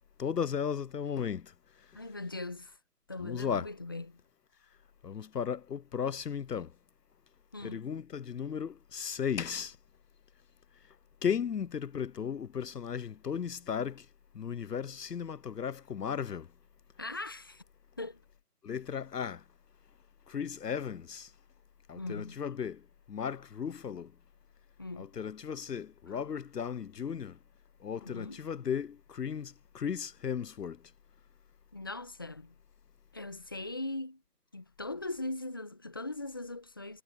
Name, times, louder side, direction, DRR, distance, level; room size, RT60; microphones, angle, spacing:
voice 1, 0.2-1.4 3.2-3.7 5.0-6.7 7.6-9.8 11.2-14.1 14.3-16.5 18.6-19.4 20.3-21.3 21.9-22.8 23.1-24.1 25.0-27.4 27.8-30.8, left 7 dB, 75° left, 0.7 m, -35 dB
voice 2, 1.9-2.8 3.1-4.2 7.5-7.9 17.0-17.6 18.0-18.2 21.9-22.4 24.8-25.1 28.0-28.4 31.7-32.5 33.1-34.2 34.5-37.0, left 2 dB, 15° left, 1.2 m, -40 dB
figure-of-eight pair, 165°, 48 cm